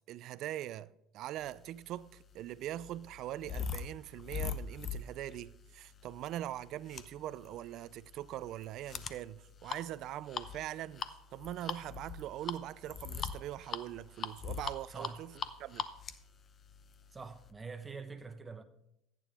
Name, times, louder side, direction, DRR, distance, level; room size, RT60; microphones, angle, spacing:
voice 1, 0.1-11.0 11.3-15.3 15.6-15.8, right 13 dB, 60° right, 0.4 m, -42 dB
sound 1, 1.8-17.5, left 6 dB, 35° left, 0.8 m, -42 dB
voice 2, 14.9-15.2 17.1-18.6, right 4 dB, 20° right, 1.1 m, -45 dB
14.5 x 9.2 x 3.6 m
supercardioid pair, 105°, 0 cm